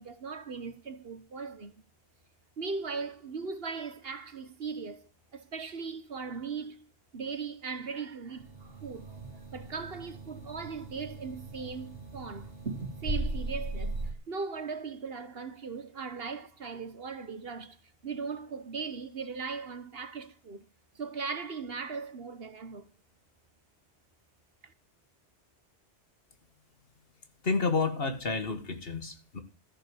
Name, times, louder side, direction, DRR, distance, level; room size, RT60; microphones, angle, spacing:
voice 1, 0.0-1.8 2.6-6.8 7.1-9.2 9.5-12.5 13.0-17.8 18.0-20.6 20.9-22.9, right 5 dB, 60° right, 1.4 m, -38 dB
sound 1, 8.4-14.1, right 2 dB, 75° right, 2.5 m, -38 dB
voice 2, 27.4-29.4, left 4 dB, 55° left, 1.8 m, -30 dB
14.0 x 6.7 x 7.9 m
omnidirectional pair, 1.2 m